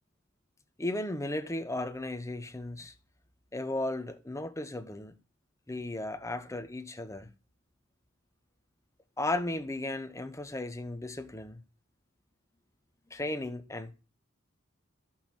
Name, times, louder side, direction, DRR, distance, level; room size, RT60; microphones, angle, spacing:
voice 1, 0.8-2.9 3.5-5.2 5.7-7.3 9.2-11.6 13.1-13.9, left 2 dB, 15° left, 0.9 m, -35 dB
11.5 x 5.8 x 4.4 m
head